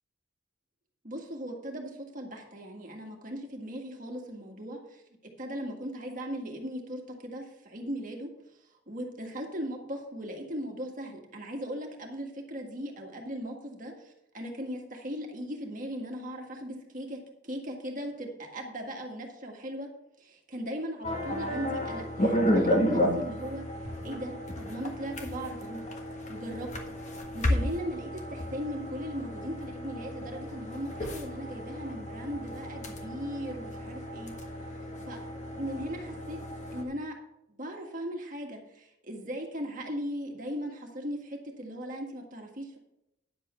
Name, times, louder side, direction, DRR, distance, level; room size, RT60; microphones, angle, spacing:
voice 1, 1.0-5.0 5.4-8.3 8.9-17.2 17.4-19.9 20.2-23.6 24.0-25.8 26.3-26.7 27.3-34.3 35.1-35.2 35.6-36.4 36.7-37.1 37.5-42.8, equal, 40° right, 1 dB, 1.8 m, -38 dB
sound 1, 21.0-36.8, equal, 35° left, 1.5 m, -32 dB
10.0 x 7.5 x 4.4 m, 0.83 s
head